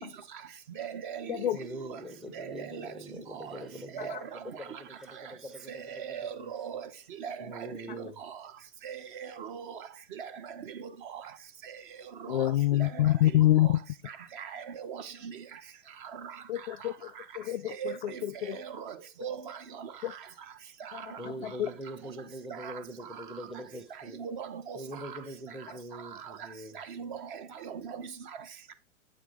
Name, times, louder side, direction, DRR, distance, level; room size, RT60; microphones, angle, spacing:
voice 1, 0.8-1.4 2.3-2.9 3.4-3.5 3.9-4.4 5.7-6.9 7.2-7.7 8.8-9.8 10.2-10.3 10.8-11.2 12.2-12.5 12.8-13.7 14.4-15.4 16.2-16.3 17.8-18.2 18.6-18.9 19.2-19.9 20.9-21.2 22.6-22.7 24.2-24.8 26.7-28.1, right 7 dB, 40° right, 1.0 m, -40 dB
voice 2, 1.5-6.5 7.4-8.2 21.2-24.2 24.7-26.8, right 1 dB, ahead, 0.6 m, -43 dB
voice 3, 12.3-13.8 16.5-18.6 20.0-20.1 20.9-21.7, left 14 dB, 45° left, 0.4 m, -27 dB
8.5 x 3.7 x 4.8 m
figure-of-eight pair, 120°, 40 cm